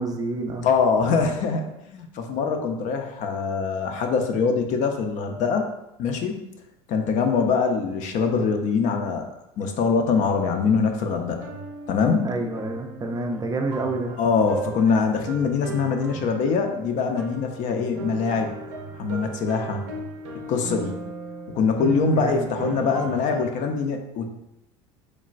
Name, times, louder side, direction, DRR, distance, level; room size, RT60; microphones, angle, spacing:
voice 1, 0.0-0.7 12.2-14.2 22.1-22.5, right 2 dB, 25° right, 3 dB, 0.4 m, -28 dB
voice 2, 0.6-5.7 6.0-6.4 6.9-9.3 9.6-11.5 11.9-12.3 14.2-18.5 18.9-19.8 20.5-20.9 21.5-24.3, left 5 dB, 55° left, 4 dB, 0.5 m, -23 dB
sound 1, 11.3-23.5, right 4 dB, 80° right, 0.5 m, -37 dB
3.1 x 2.1 x 2.4 m, 0.86 s
hypercardioid pair, 85°, 15 cm